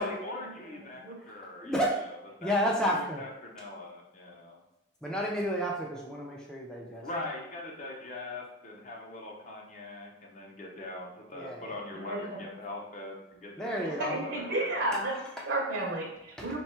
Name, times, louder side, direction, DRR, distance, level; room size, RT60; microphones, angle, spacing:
voice 1, 0.0-1.7 2.4-2.6 2.9-4.6 7.0-15.0, left 2 dB, 40° left, 0 dB, 0.6 m, -41 dB
voice 2, 0.7-1.2 11.9-12.4 14.0-15.2 15.5-16.6, right 2 dB, 65° right, -2 dB, 0.7 m, -32 dB
voice 3, 1.6-2.0 2.4-3.2 5.0-7.1 11.3-11.8 13.6-14.3 15.4-15.5 16.4-16.6, equal, 5° left, -3 dB, 0.4 m, -31 dB
3.5 x 2.3 x 4.3 m, 0.89 s
head